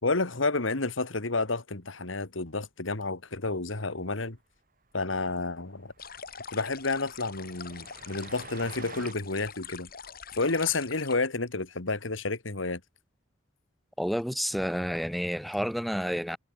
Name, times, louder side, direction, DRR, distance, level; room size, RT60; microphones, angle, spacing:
voice 1, 0.0-4.4 4.9-5.9 6.5-9.9 10.3-12.8, left 3 dB, 90° left, 2.2 m, -30 dB
Train, 4.6-4.7 4.9-5.1 5.3-5.4 5.8-9.1, right 5 dB, 45° right, 3.6 m, -49 dB
sound 1, 6.0-11.2, left 6 dB, 50° left, 5.0 m, -44 dB
voice 2, 14.0-16.4, equal, ahead, 1.1 m, -30 dB
head